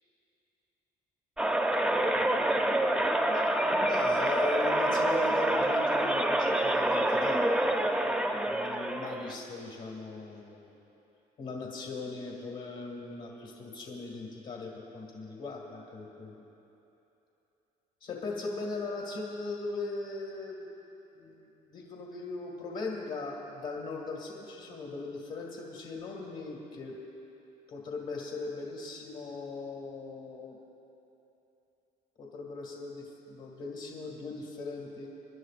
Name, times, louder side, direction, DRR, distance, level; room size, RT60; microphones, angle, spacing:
sound 1, 1.4-9.3, right 1 dB, 5° right, 0.6 m, -27 dB
voice 1, 3.3-7.4 8.5-10.8 11.4-16.3 18.0-20.7 21.1-26.9 27.7-30.6 32.2-35.1, left 3 dB, 55° left, -2 dB, 2.1 m, -39 dB
28.5 x 11.0 x 2.5 m, 3.0 s
cardioid pair, 110°, 17 cm